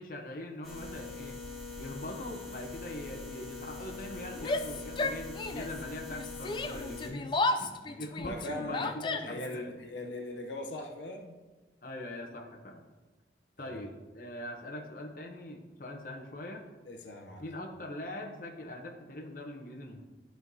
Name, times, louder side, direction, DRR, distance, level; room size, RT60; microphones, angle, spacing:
voice 1, 0.0-1.4 1.8-9.7 11.8-12.8 13.6-16.7 17.4-20.0, left 1 dB, 50° left, 1 dB, 0.8 m, -42 dB
sound 1, 0.6-7.1, left 3 dB, ahead, 1.4 m, -43 dB
Yell, 4.3-5.8 6.1-9.5, left 2 dB, 25° left, 0.3 m, -33 dB
voice 2, 8.2-8.9 9.2-11.4 13.6-13.9 16.9-17.5, left 1 dB, 85° left, 2 dB, 0.7 m, -40 dB
11.5 x 4.5 x 2.7 m, 1.2 s
head